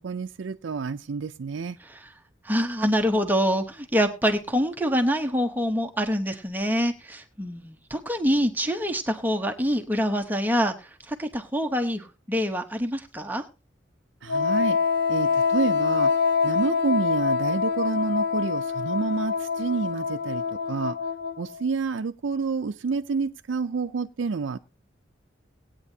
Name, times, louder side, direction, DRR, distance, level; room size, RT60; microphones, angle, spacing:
voice 1, 0.0-1.8 14.2-14.8 15.1-16.1 16.4-20.4 20.7-21.0 21.4-24.6, right 4 dB, 80° right, 6 dB, 0.5 m, -28 dB
voice 2, 1.8-2.1 2.4-13.4, equal, 10° right, 5 dB, 0.8 m, -25 dB
Wind instrument woodwind instrument, 14.3-21.6, left 5 dB, 55° left, 0.5 m, -25 dB
18.0 x 9.0 x 2.8 m, 0.29 s
head